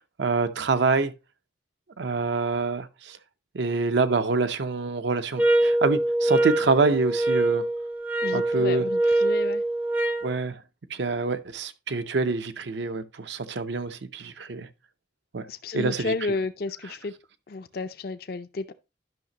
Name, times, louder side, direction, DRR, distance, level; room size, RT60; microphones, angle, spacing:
voice 1, 0.2-1.1 2.0-3.2 3.5-7.7 8.3-8.9 10.2-10.6 10.9-14.7 15.3-15.4 15.7-16.1, right 3 dB, 75° right, 0.6 m, -26 dB
sound 1, 5.4-10.3, right 1 dB, 10° right, 0.5 m, -24 dB
voice 2, 8.2-9.6 15.5-17.1 17.5-18.7, left 3 dB, 55° left, 0.4 m, -32 dB
10.5 x 5.8 x 2.8 m
head